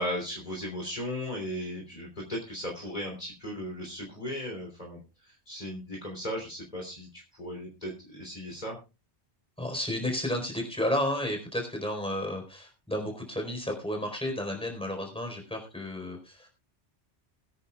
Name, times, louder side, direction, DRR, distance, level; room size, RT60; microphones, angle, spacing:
voice 1, 0.0-8.8, equal, 40° left, 0 dB, 3.4 m, -36 dB
voice 2, 9.6-16.5, left 1 dB, 5° left, 2 dB, 4.2 m, -32 dB
22.5 x 9.6 x 2.4 m, 0.28 s
omnidirectional pair, 1.2 m